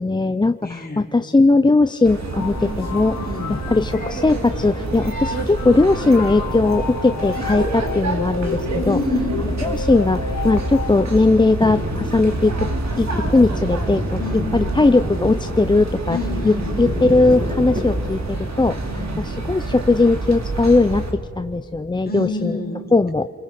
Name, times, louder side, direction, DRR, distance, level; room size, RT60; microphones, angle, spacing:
voice 1, 0.0-3.2 3.7-9.0 9.5-12.7 12.9-14.2 14.5-16.2 16.5-18.8 19.2-22.6 22.9-23.3, left 3 dB, 15° left, 10 dB, 0.5 m, -18 dB
voice 2, 0.6-1.1 3.2-3.6 8.8-9.5 14.2-14.5 16.1-16.8 18.9-19.2 22.0-22.8, left 3 dB, 30° left, 0 dB, 4.4 m, -27 dB
sound 1, 2.0-21.1, right 2 dB, 60° right, 3.0 m, -27 dB
sound 2, 2.3-11.0, left 6 dB, 85° left, 2.1 m, -32 dB
sound 3, 11.6-18.3, equal, 30° right, 6.8 m, -30 dB
28.5 x 21.5 x 5.8 m, 2.5 s
wide cardioid pair, 95°, 30 cm